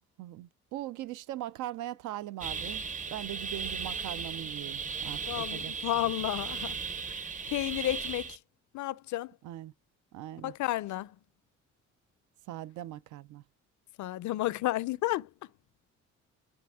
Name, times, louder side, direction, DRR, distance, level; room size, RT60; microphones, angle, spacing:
voice 1, 0.2-2.8 3.1-5.7 9.4-9.7 10.1-10.5 12.5-13.4, right 14 dB, 85° right, 0.5 m, -40 dB
sound 1, 2.4-8.4, right 5 dB, 25° right, 0.6 m, -36 dB
voice 2, 5.3-6.8 7.1-8.4 8.7-9.4 10.4-11.2 14.0-15.5, left 15 dB, 70° left, 0.5 m, -32 dB
9.8 x 3.5 x 3.5 m
cardioid pair, 90°, 30 cm